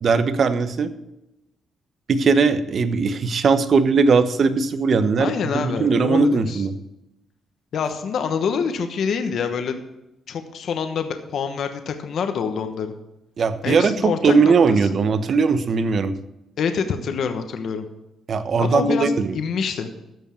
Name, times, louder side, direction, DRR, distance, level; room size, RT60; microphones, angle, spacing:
voice 1, 0.0-0.9 2.1-6.7 13.4-16.1 18.3-19.4, right 4 dB, 50° right, 11 dB, 0.9 m, -19 dB
voice 2, 5.2-6.6 7.7-9.8 10.3-12.9 13.6-14.5 16.6-17.8 18.6-19.9, left 6 dB, 65° left, 7 dB, 1.1 m, -26 dB
13.5 x 5.4 x 6.9 m, 0.91 s
cardioid pair, 90°, 0 cm